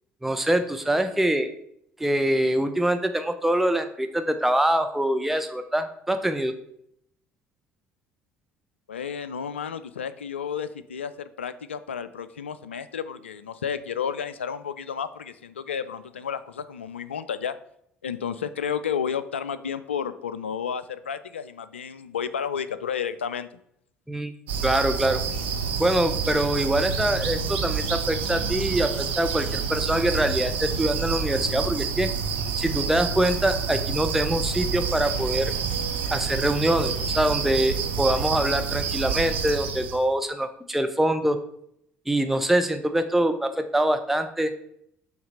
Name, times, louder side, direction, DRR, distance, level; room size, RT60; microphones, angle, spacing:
voice 1, 0.2-1.5 2.0-6.5 24.1-24.3 24.6-25.2 25.8-32.1 32.6-35.5 36.1-41.4 42.1-44.5, right 1 dB, 5° right, 7 dB, 0.6 m, -24 dB
voice 2, 8.9-17.6 18.0-23.5, left 7 dB, 80° left, 13 dB, 0.3 m, -32 dB
sound 1, 24.5-40.0, right 6 dB, 75° right, 0.7 m, -28 dB
5.7 x 3.9 x 5.4 m, 0.72 s
figure-of-eight pair, 55°, 6 cm